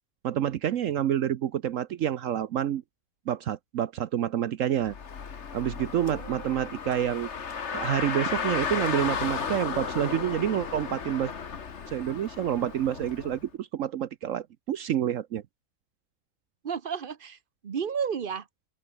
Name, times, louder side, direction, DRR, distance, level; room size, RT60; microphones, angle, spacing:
voice 1, 0.2-2.8 3.3-4.9 5.5-7.3 7.7-11.3 11.9-15.4, right 10 dB, 65° right, 1.0 m, -28 dB
Car, 4.8-13.4, left 6 dB, 50° left, 1.7 m, -34 dB
voice 2, 6.1-6.7 16.6-17.4 17.6-18.5, right 7 dB, 40° right, 0.9 m, -33 dB
open air
omnidirectional pair, 1.5 m